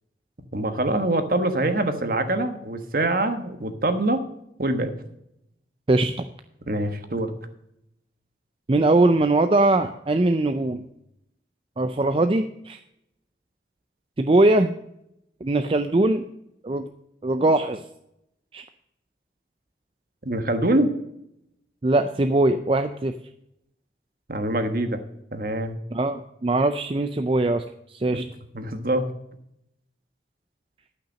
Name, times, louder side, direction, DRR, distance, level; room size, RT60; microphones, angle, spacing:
voice 1, 0.5-4.2 4.6-4.9 6.7-7.3 20.2-20.9 24.3-25.0 25.3-25.8 28.1-28.2 28.5-29.0, right 1 dB, 50° right, 8 dB, 1.2 m, -24 dB
voice 2, 8.7-10.8 11.8-12.8 14.2-14.7 15.4-16.3 16.6-16.8 17.2-17.8 18.5-18.6 21.8-23.2 25.9-28.2, right 2 dB, 30° right, 8 dB, 0.4 m, -21 dB
11.5 x 6.0 x 6.3 m, 0.79 s
head